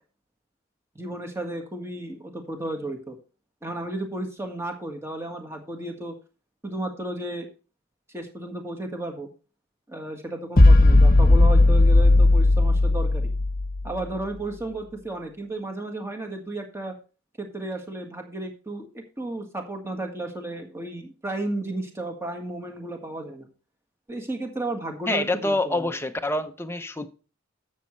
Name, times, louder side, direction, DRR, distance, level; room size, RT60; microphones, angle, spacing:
voice 1, 1.0-3.2 3.6-6.1 6.6-7.5 8.1-9.3 9.9-13.3 13.8-16.9 17.4-23.5 24.1-26.0, right 2 dB, 10° right, 1.7 m, -33 dB
sound 1, 10.6-14.0, left 2 dB, 40° left, 1.0 m, -16 dB
voice 2, 25.1-27.1, left 2 dB, 10° left, 0.7 m, -26 dB
12.5 x 7.4 x 3.2 m
head